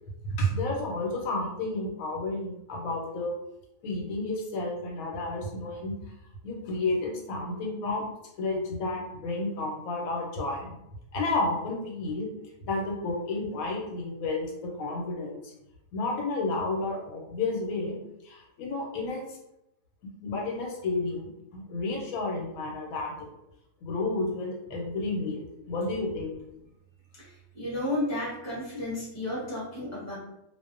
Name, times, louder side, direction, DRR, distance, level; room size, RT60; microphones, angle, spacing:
voice 1, 0.4-3.4 3.8-5.9 6.4-8.0 8.4-10.7 11.1-12.3 12.6-15.5 15.9-18.0 18.2-19.4 20.0-23.3 23.8-26.4, left 2 dB, 85° left, -1 dB, 1.1 m, -31 dB
voice 2, 27.1-30.2, left 1 dB, 15° left, -7 dB, 0.6 m, -33 dB
2.4 x 2.0 x 2.4 m, 0.86 s
omnidirectional pair, 1.4 m